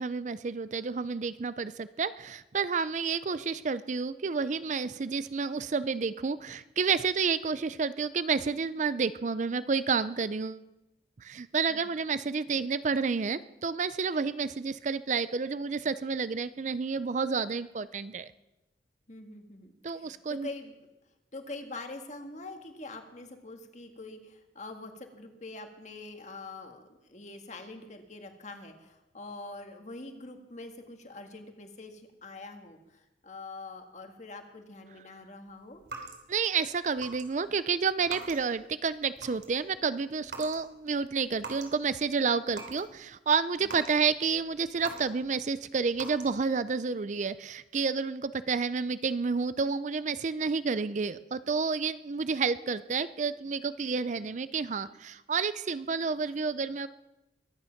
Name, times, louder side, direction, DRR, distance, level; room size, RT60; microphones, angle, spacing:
voice 1, 0.0-10.6 11.2-18.3 19.8-20.5 36.3-56.9, right 5 dB, 45° right, 15 dB, 0.4 m, -30 dB
voice 2, 19.1-20.8 21.3-35.8 43.6-43.7, left 2 dB, 40° left, 5 dB, 1.7 m, -44 dB
sound 1, 35.8-36.5 37.0-37.2 37.5-38.6 39.0-39.6 40.2-40.6 40.9-41.8 42.2-42.9 43.3-45.4 45.9-46.5, right 4 dB, 75° right, 2.9 m, -43 dB
22.5 x 9.7 x 5.8 m, 0.98 s
head